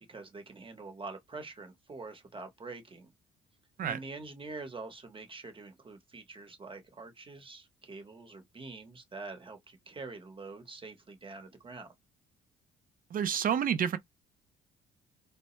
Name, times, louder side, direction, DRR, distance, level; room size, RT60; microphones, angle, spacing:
voice 1, 0.1-3.1 3.8-11.9, right 3 dB, 25° right, 1.1 m, -45 dB
voice 2, 13.1-14.0, right 8 dB, 45° right, 0.6 m, -29 dB
2.0 x 2.0 x 3.1 m
hypercardioid pair, 60°, 20 cm